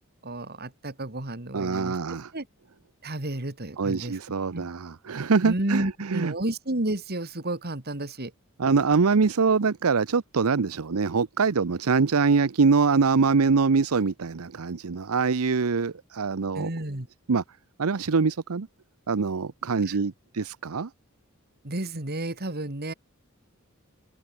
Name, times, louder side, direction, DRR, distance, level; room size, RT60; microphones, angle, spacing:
voice 1, 0.2-2.0 2.3-2.5 3.0-4.2 4.5-4.7 5.4-8.3 16.6-17.1 19.9-20.0 21.6-22.9, right 1 dB, 50° right, 2.6 m, -31 dB
voice 2, 1.5-2.3 3.8-6.3 8.6-16.7 17.3-17.4 17.8-18.7 19.1-20.9, right 4 dB, 90° right, 0.7 m, -24 dB
head